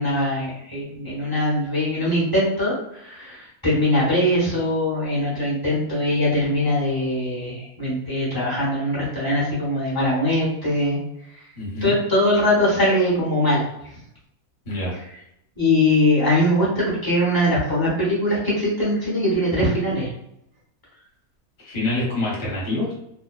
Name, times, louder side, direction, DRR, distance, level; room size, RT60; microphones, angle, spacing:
voice 1, 0.0-11.0 11.8-13.6 15.6-20.1, left 1 dB, 20° left, -7 dB, 0.7 m, -21 dB
voice 2, 11.6-12.0 14.7-15.0 21.6-22.9, left 2 dB, 40° left, -5 dB, 1.0 m, -26 dB
2.5 x 2.1 x 2.3 m, 0.80 s
omnidirectional pair, 1.5 m